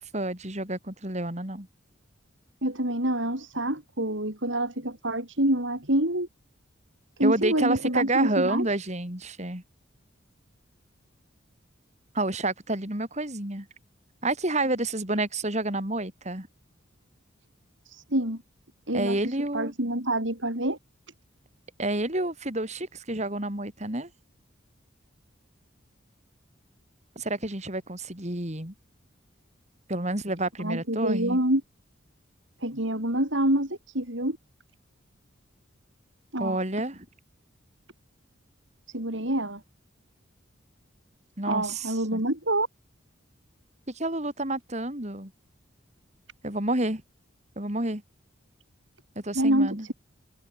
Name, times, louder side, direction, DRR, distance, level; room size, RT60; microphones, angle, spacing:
voice 1, 0.1-1.7 7.2-9.6 12.1-13.7 14.2-16.5 18.9-19.7 21.8-24.1 27.2-28.7 29.9-31.4 36.4-37.1 41.4-42.2 43.9-45.3 46.4-47.0 47.6-48.0 49.2-49.9, right 2 dB, 35° right, 4.4 m, -29 dB
voice 2, 2.6-6.3 7.2-8.7 17.9-18.4 18.9-20.8 30.6-31.6 32.6-34.4 36.3-36.6 38.9-39.6 41.4-42.7 49.3-49.9, right 1 dB, 70° right, 7.5 m, -27 dB
head